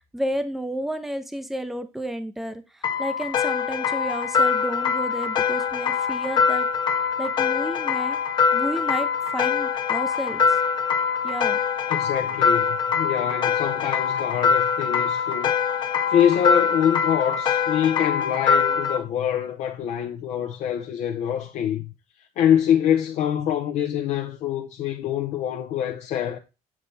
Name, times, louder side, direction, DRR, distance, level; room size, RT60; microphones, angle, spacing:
voice 1, 0.1-6.7 7.2-8.2 8.5-10.6 11.2-11.6, right 1 dB, ahead, 0.6 m, -31 dB
sound 1, 2.8-19.0, left 6 dB, 40° left, 0.9 m, -23 dB
voice 2, 11.9-15.5 16.1-21.9 22.4-26.4, left 9 dB, 65° left, 0.7 m, -25 dB
7.3 x 3.3 x 4.0 m
cardioid pair, 170°, 12 cm